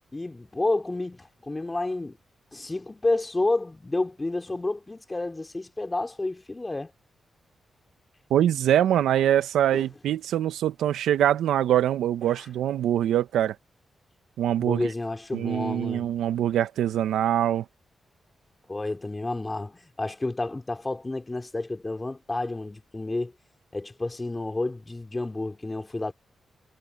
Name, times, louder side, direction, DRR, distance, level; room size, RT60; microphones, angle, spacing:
voice 1, 0.1-2.2 2.5-6.9 9.7-9.9 12.3-12.4 14.6-16.1 18.7-23.3 23.7-26.1, left 2 dB, 25° left, 3.3 m, -30 dB
voice 2, 8.3-13.5 14.4-14.9 15.3-17.6, right 11 dB, 80° right, 1.6 m, -23 dB
supercardioid pair, 40°, 0 cm